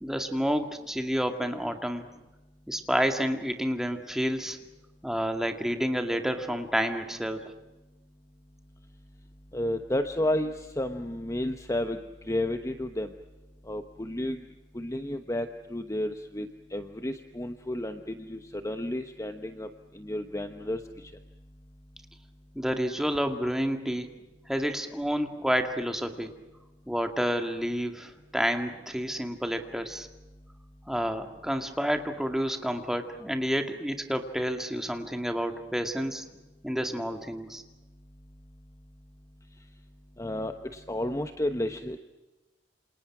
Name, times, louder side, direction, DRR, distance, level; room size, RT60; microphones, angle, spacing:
voice 1, 0.0-2.0 2.7-4.6 5.0-7.5 22.6-24.1 24.5-26.3 26.9-30.1 30.9-36.2 36.6-37.6, equal, 5° right, 6 dB, 2.2 m, -29 dB
voice 2, 9.5-12.0 12.3-13.1 13.7-14.4 14.7-19.7 19.9-20.8 40.2-42.0, left 1 dB, 15° left, 7 dB, 1.0 m, -31 dB
28.5 x 27.5 x 6.1 m, 1.1 s
head